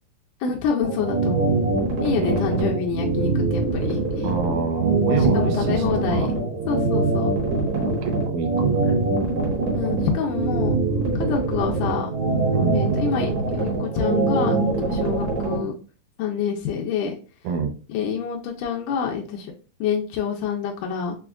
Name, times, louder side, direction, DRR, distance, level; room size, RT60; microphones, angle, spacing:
voice 1, 0.4-1.5 2.0-4.3 5.2-6.3 6.7-7.4 9.7-10.8 11.1-12.1 12.7-15.7 16.2-17.1 17.9-19.5 19.8-21.2, left 6 dB, 80° left, 0 dB, 2.0 m, -27 dB
sound 1, 0.8-15.6, right 3 dB, 65° right, 2.3 m, -23 dB
voice 2, 2.2-2.5 4.2-6.3 7.7-9.0 12.5-12.8 17.4-17.7, right 5 dB, 80° right, 5 dB, 1.9 m, -27 dB
6.1 x 2.3 x 2.2 m, 0.36 s
omnidirectional pair, 3.9 m